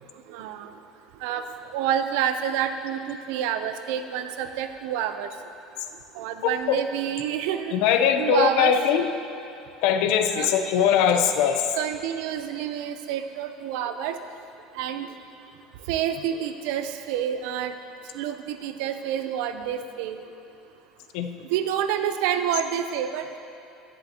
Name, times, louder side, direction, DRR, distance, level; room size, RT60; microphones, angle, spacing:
voice 1, 0.3-0.7 1.2-1.5 1.7-5.3 6.2-8.7 10.3-10.5 11.7-14.2 14.8-15.1 15.9-17.7 18.1-20.2 21.5-23.3, right 9 dB, 75° right, 9 dB, 0.5 m, -28 dB
voice 2, 6.4-6.8 7.7-9.1 9.8-11.7 21.1-21.3, left 8 dB, 70° left, 7 dB, 0.6 m, -21 dB
10.5 x 10.5 x 2.9 m, 2.7 s
cardioid pair, 150°, 0 cm